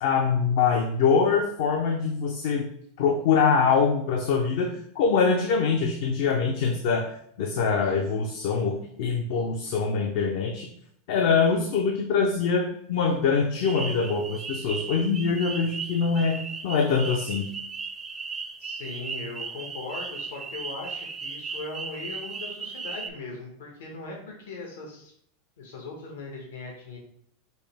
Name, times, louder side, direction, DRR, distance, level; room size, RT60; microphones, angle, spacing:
voice 1, 0.0-2.7 3.0-7.1 7.4-10.7 11.1-17.5, left 5 dB, 70° left, 3 dB, 0.5 m, -24 dB
sound 1, 13.6-23.1, right 4 dB, 20° right, 0.4 m, -36 dB
voice 2, 18.6-25.1 25.6-27.0, left 3 dB, 85° left, 0 dB, 1.1 m, -39 dB
5.3 x 2.0 x 3.3 m, 0.69 s
supercardioid pair, 125°, 0 cm